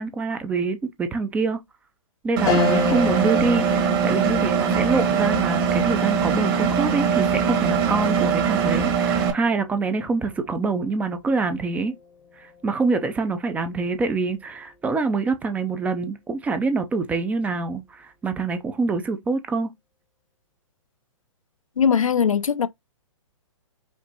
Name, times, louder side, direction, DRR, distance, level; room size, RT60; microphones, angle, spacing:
voice 1, 0.0-1.6 2.2-11.9 12.4-19.7, right 4 dB, 10° right, 0.4 m, -25 dB
Engine, 2.4-9.3, right 7 dB, 45° right, 1.5 m, -22 dB
sound 1, 2.5-12.1 12.5-12.6 14.0-14.4, left 5 dB, 20° left, 0.7 m, -32 dB
voice 2, 21.8-22.7, left 7 dB, 85° left, 0.5 m, -20 dB
5.2 x 2.5 x 2.7 m
hypercardioid pair, 125°, 17 cm